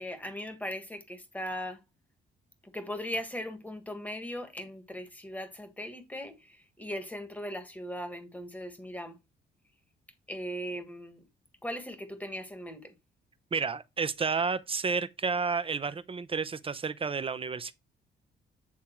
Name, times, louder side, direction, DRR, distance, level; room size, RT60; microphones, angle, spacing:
voice 1, 0.0-1.8 2.6-9.2 10.3-11.3 11.6-12.9, equal, 10° left, 1.6 m, -39 dB
voice 2, 13.5-17.7, right 5 dB, 30° right, 0.7 m, -31 dB
8.8 x 3.6 x 4.5 m
cardioid pair, 90°, 20 cm